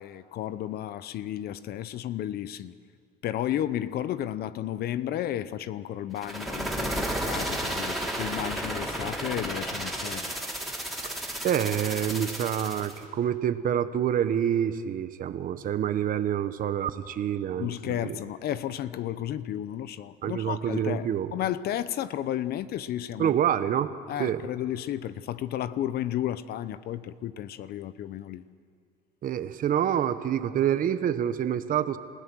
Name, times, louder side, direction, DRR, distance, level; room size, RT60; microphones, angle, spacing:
voice 1, 0.0-2.7 3.2-10.3 17.6-23.3 24.1-28.4, left 11 dB, 65° left, 0.8 m, -33 dB
sound 1, 6.2-13.0, right 1 dB, ahead, 3.6 m, -32 dB
voice 2, 11.4-18.2 20.2-21.3 23.2-23.9 24.2-24.4 29.2-32.0, right 9 dB, 55° right, 1.1 m, -27 dB
29.0 x 16.5 x 6.3 m
cardioid pair, 110°, 17 cm